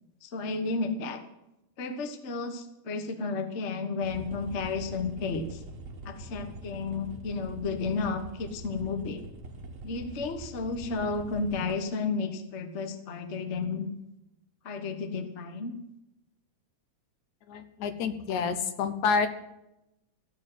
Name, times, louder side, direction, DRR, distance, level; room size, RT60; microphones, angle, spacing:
voice 1, 0.2-1.2 1.8-5.6 6.0-9.2 9.8-13.9 14.6-15.7, left 4 dB, 45° left, 7 dB, 0.9 m, -32 dB
sound 1, 4.0-11.9 13.2-13.3 13.6-13.7, right 2 dB, 40° right, 1.2 m, -44 dB
voice 2, 17.5-19.3, left 5 dB, 85° left, 9 dB, 2.6 m, -28 dB
14.5 x 7.4 x 9.1 m, 0.88 s
omnidirectional pair, 3.3 m